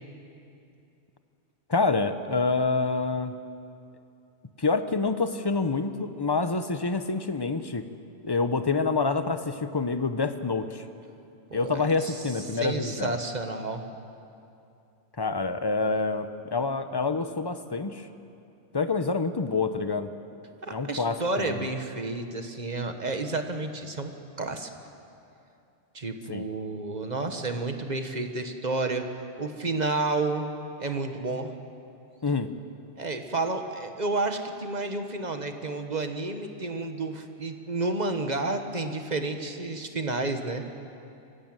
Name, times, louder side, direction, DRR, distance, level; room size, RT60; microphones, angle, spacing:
voice 1, 1.7-3.3 4.6-7.8 8.2-10.8 11.5-13.2 15.2-18.1 18.7-20.1 20.7-21.7 26.3-26.4 32.2-32.5, left 4 dB, 25° left, 10 dB, 0.8 m, -27 dB
voice 2, 11.5-13.8 20.6-24.1 24.4-24.7 25.9-29.1 29.4-30.5 30.8-31.5 33.0-40.6, right 3 dB, 35° right, 6 dB, 1.5 m, -31 dB
24.0 x 16.0 x 9.0 m, 2.7 s
omnidirectional pair, 1.2 m